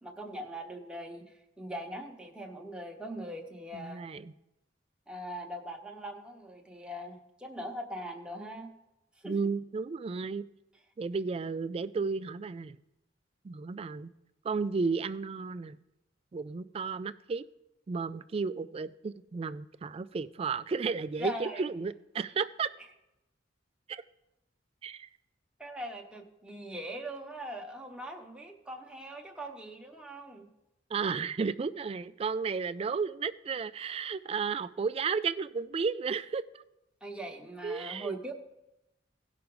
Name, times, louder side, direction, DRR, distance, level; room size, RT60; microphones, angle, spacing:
voice 1, 0.0-4.0 5.1-8.7 9.2-9.3 21.2-21.6 25.6-30.5 37.0-38.3, equal, 5° right, 1 dB, 1.0 m, -41 dB
voice 2, 3.7-4.3 9.2-10.5 11.0-12.8 13.4-14.1 14.4-15.8 16.3-17.5 17.9-22.7 23.9-24.0 24.8-25.1 30.9-36.6 37.6-38.2, right 5 dB, 30° right, 14 dB, 0.3 m, -33 dB
17.0 x 5.7 x 3.9 m, 0.91 s
head